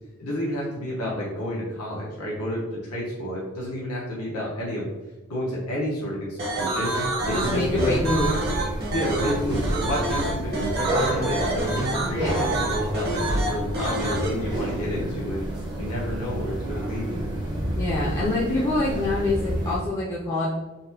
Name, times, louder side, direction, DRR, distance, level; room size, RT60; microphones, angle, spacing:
voice 1, 0.2-4.9 5.3-6.9 7.2-7.9 8.9-15.4 15.8-17.3, equal, 90° left, -5 dB, 0.9 m, -30 dB
sound 1, 6.4-14.3, right 2 dB, 45° right, 0.9 m, -27 dB
sound 2, 7.2-19.8, right 1 dB, 20° right, 0.6 m, -30 dB
voice 2, 7.3-8.3 12.1-12.3 17.7-20.5, left 2 dB, 20° left, -6 dB, 0.5 m, -26 dB
3.9 x 2.2 x 2.7 m, 1.1 s
head